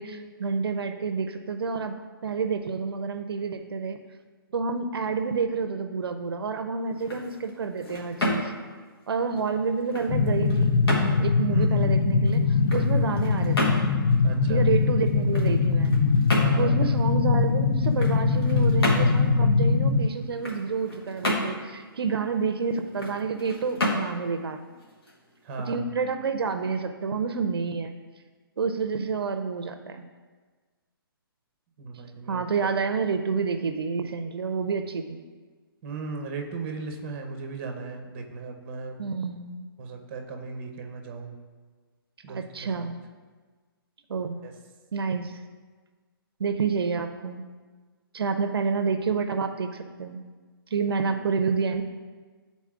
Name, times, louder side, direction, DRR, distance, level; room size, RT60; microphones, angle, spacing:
voice 1, 0.0-2.0 2.2-4.0 4.5-8.5 9.1-10.7 11.2-13.9 14.5-15.9 16.6-24.7 25.7-27.9 28.6-30.0 32.3-35.2 39.0-39.7 42.3-43.0 44.1-44.4 44.9-45.4 46.4-47.5 48.1-50.2 50.7-51.8, right 5 dB, 85° right, 7 dB, 0.5 m, -29 dB
sound 1, 6.9-25.7, left 1 dB, 80° left, 1.6 m, -33 dB
sound 2, 10.1-20.1, left 4 dB, 35° left, 0.4 m, -22 dB
voice 2, 11.5-11.9 12.7-13.1 14.2-14.7 16.4-16.8 25.4-25.9 31.8-32.4 35.8-39.0 39.8-41.4 42.2-42.9 44.4-44.5, right 4 dB, 30° right, 4 dB, 0.8 m, -37 dB
10.0 x 4.1 x 2.4 m, 1.4 s
hypercardioid pair, 150°, 12 cm